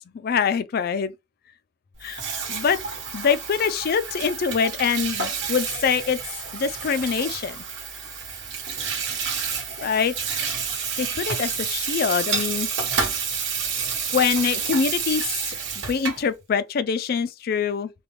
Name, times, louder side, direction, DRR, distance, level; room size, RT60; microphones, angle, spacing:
voice 1, 0.1-1.1 2.0-2.8 3.1-6.2 6.5-7.6 9.8-10.5 11.0-12.7 13.1-13.2 14.1-17.9, left 6 dB, 50° left, 0.4 m, -24 dB
Water tap faucet / Sink (filling or washing), 2.0-16.3, right 6 dB, 70° right, 1.2 m, -29 dB
3.4 x 2.2 x 3.0 m
head